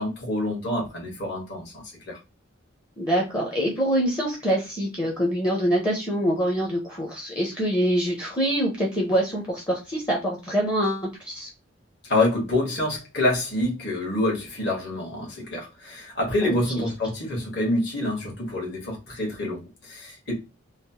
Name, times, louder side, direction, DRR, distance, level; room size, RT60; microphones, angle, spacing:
voice 1, 0.0-2.2 12.0-20.3, left 1 dB, 60° left, 1.3 m, -27 dB
voice 2, 3.0-11.5 16.4-16.6, equal, 20° left, 0.6 m, -25 dB
3.0 x 2.0 x 2.7 m
head